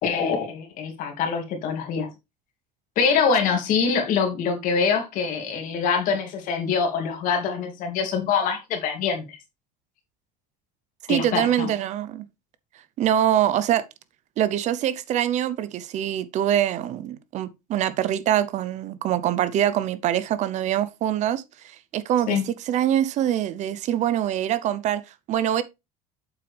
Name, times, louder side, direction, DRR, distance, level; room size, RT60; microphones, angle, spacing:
voice 1, 0.0-2.1 3.0-9.4 11.1-11.7 22.3-22.4, left 6 dB, 60° left, 2.5 m, -24 dB
voice 2, 11.1-12.3 13.0-13.9 14.4-25.6, right 11 dB, 50° right, 0.7 m, -24 dB
7.6 x 5.9 x 3.3 m
cardioid pair, 125°, 15 cm